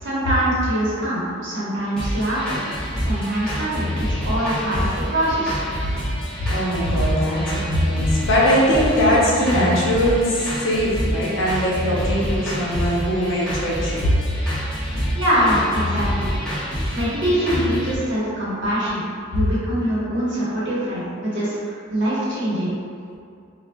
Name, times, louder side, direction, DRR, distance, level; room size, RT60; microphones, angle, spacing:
voice 1, 0.0-3.9 4.2-5.6 15.1-16.3 16.9-19.0 19.3-22.8, equal, 60° right, -9 dB, 1.0 m, -23 dB
sound 1, 2.0-18.0, equal, 5° left, 0.8 m, -27 dB
voice 2, 6.5-14.1, equal, 70° left, -5 dB, 0.7 m, -21 dB
4.2 x 2.3 x 2.2 m, 2.4 s
head